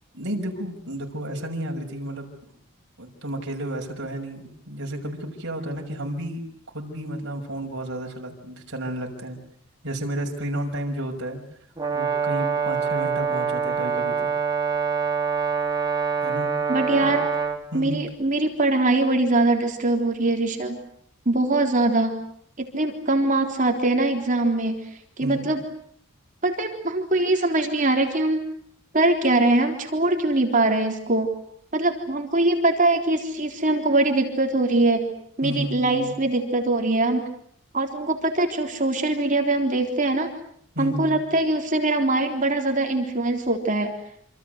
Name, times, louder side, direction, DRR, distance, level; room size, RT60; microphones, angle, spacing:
voice 1, 0.1-2.3 3.0-6.4 6.7-9.4 9.8-11.4 11.9-14.3 16.2-16.5 17.0-17.2 17.7-18.0 25.2-25.5 35.4-36.2 40.7-41.2, right 1 dB, 55° right, 1 dB, 6.1 m, -32 dB
Brass instrument, 11.8-17.6, right 5 dB, 20° right, 3.4 m, -25 dB
voice 2, 16.7-17.2 17.7-20.8 21.3-22.2 22.6-24.8 25.2-25.6 26.4-28.4 28.9-31.3 31.7-37.2 37.7-40.3 40.8-43.9, right 2 dB, 35° right, 3 dB, 3.7 m, -22 dB
27.5 x 27.0 x 8.1 m, 0.67 s
head